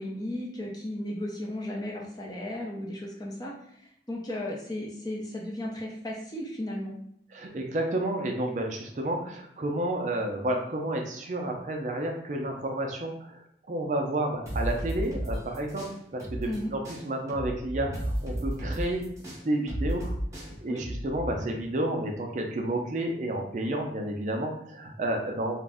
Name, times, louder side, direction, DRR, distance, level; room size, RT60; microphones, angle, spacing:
voice 1, 0.0-7.0 16.5-16.7 20.7-20.8, left 1 dB, 25° left, -2 dB, 0.5 m, -35 dB
voice 2, 7.3-25.6, right 1 dB, 40° right, 2 dB, 0.4 m, -31 dB
sound 1, 14.5-16.6 16.8-21.4, right 1 dB, 15° right, 0.7 m, -33 dB
2.4 x 2.0 x 3.4 m, 0.68 s
head